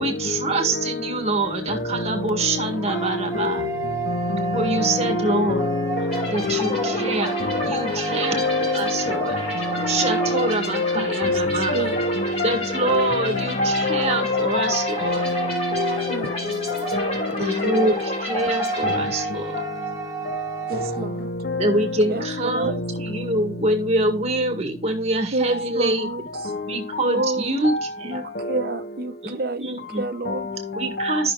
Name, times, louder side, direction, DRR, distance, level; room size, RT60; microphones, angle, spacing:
voice 1, 0.0-3.6 4.5-5.7 6.3-7.3 7.6-9.4 9.9-11.7 12.4-15.2 17.4-19.6 21.6-26.1 26.7-28.2 29.2-30.0 30.7-31.3, right 2 dB, 35° right, 1.8 m, -25 dB
sound 1, 2.3-11.0 13.3-21.1, right 4 dB, 15° right, 1.1 m, -32 dB
voice 2, 3.3-3.7 10.9-12.0 15.8-16.7 19.6-19.8 20.7-21.3 21.7-22.8 25.3-26.6 27.1-27.6 28.0-30.6, right 2 dB, 50° right, 0.7 m, -30 dB
voice 3, 4.5-6.8 7.6-7.7 8.1-8.8 9.8-12.5 12.9-13.2 13.6-14.7 15.0-15.4 15.8-15.9 16.9-18.0 18.8-19.0 21.5-21.7, left 3 dB, 55° left, 1.0 m, -25 dB
sound 2, 6.1-19.7, left 1 dB, 30° left, 2.4 m, -31 dB
13.5 x 6.1 x 2.4 m
head